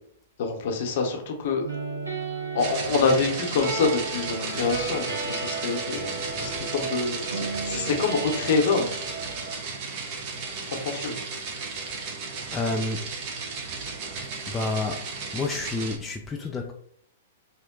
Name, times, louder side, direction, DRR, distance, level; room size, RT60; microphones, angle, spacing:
voice 1, 0.4-1.6 2.5-8.9 10.7-11.1, left 4 dB, 55° left, 0.8 m, -26 dB
sound 1, 1.6-9.6, right 4 dB, 90° right, 0.9 m, -34 dB
sound 2, 2.6-16.0, right 4 dB, 45° right, 0.8 m, -34 dB
voice 2, 12.5-13.0 14.5-15.0 15.3-16.7, left 3 dB, 15° left, 0.3 m, -29 dB
2.9 x 2.1 x 3.7 m
hypercardioid pair, 110°, 0 cm